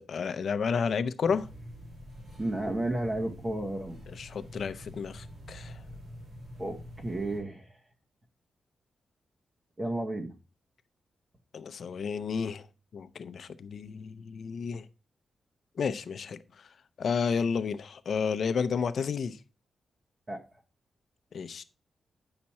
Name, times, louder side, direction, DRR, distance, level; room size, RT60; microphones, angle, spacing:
voice 1, 0.0-1.5 4.1-5.8 11.5-12.7 12.9-14.8 15.8-16.4 17.0-19.4 21.3-21.6, left 6 dB, 55° left, 0.6 m, -31 dB
sound 1, 1.2-7.4, equal, 65° right, 4.4 m, -46 dB
voice 2, 2.4-4.0 6.6-7.7 9.8-10.3 20.3-20.4, right 1 dB, 25° right, 0.9 m, -32 dB
8.7 x 5.9 x 4.1 m
wide cardioid pair, 155°, 0 cm